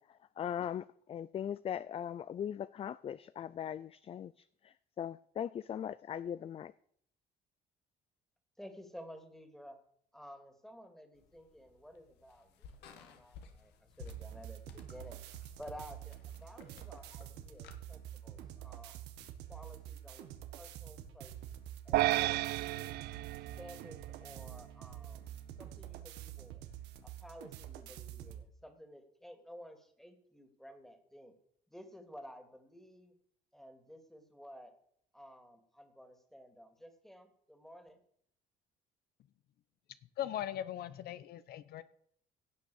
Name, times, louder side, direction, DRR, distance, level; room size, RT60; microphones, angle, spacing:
voice 1, 0.0-6.7, left 9 dB, 35° left, 0.4 m, -40 dB
voice 2, 8.6-9.8 10.1-15.2 15.6-19.0 19.5-20.3 20.6-21.4 21.8-22.9 23.6-25.3 25.6-26.7 27.0-31.3 31.7-33.1 33.5-34.7 35.1-38.0, equal, ahead, 2.6 m, -53 dB
sound 1, 11.1-17.8, left 6 dB, 85° left, 1.9 m, -56 dB
sound 2, 14.0-28.4, right 11 dB, 90° right, 1.6 m, -48 dB
sound 3, 21.9-24.4, right 17 dB, 75° right, 0.4 m, -33 dB
voice 3, 40.2-41.8, left 11 dB, 65° left, 0.8 m, -39 dB
16.5 x 6.6 x 7.1 m
cardioid pair, 110°, 17 cm